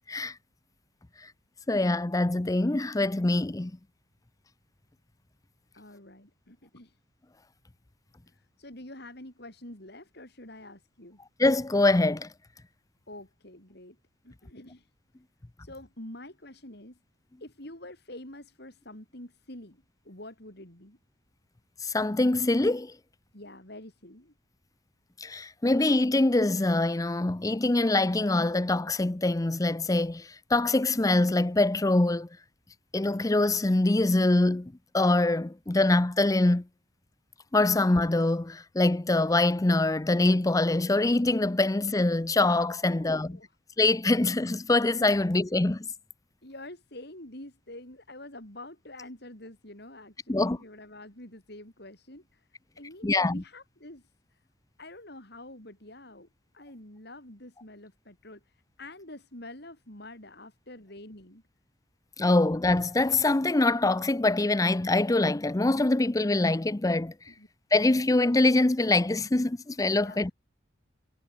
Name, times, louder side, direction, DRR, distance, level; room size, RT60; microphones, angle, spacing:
voice 1, 1.7-3.7 11.4-12.3 21.8-22.9 25.2-32.3 32.9-36.7 37.5-43.4 43.8-45.9 50.3-50.6 53.0-53.4 62.2-67.1 67.7-70.3, left 2 dB, 20° left, 0.5 m, -24 dB
voice 2, 5.7-6.9 8.3-11.2 13.1-14.0 14.2-14.9 15.6-17.0 17.4-21.0 23.3-24.3 42.8-43.5 45.1-45.2 46.4-52.5 52.8-54.0 54.8-56.3 56.5-58.4 58.8-61.4 67.3-67.5 70.0-70.2, left 1 dB, 55° left, 6.9 m, -46 dB
head